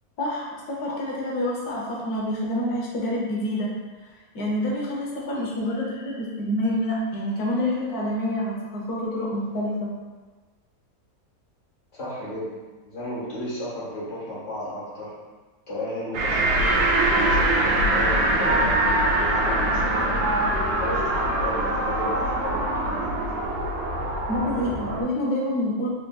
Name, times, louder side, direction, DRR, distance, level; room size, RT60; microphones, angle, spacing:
voice 1, 0.2-3.7 4.3-9.9 24.3-25.9, left 1 dB, 85° left, -3 dB, 1.3 m, -27 dB
voice 2, 11.9-12.5 12.8-15.1 15.7-16.5 17.1-18.8 19.1-20.3 20.8-23.2, left 1 dB, 55° left, -8 dB, 1.6 m, -33 dB
sound 1, 16.1-25.0, right 1 dB, 85° right, 1.1 m, -23 dB
3.7 x 3.5 x 2.2 m, 1.3 s
omnidirectional pair, 1.6 m